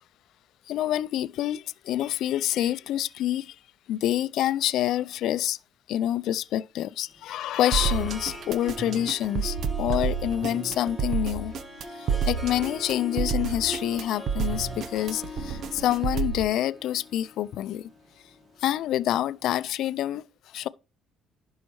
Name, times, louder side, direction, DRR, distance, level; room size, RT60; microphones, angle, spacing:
voice 1, 0.7-3.6 3.9-5.6 5.9-11.5 12.0-17.9 18.6-20.2 20.5-20.7, left 12 dB, 75° left, 0.3 m, -27 dB
Harp, 7.1-19.3, equal, 30° right, 1.7 m, -41 dB
sound 1, 7.7-16.4, right 7 dB, 60° right, 0.8 m, -29 dB
11.0 x 5.5 x 3.1 m
cardioid pair, 90°, 0 cm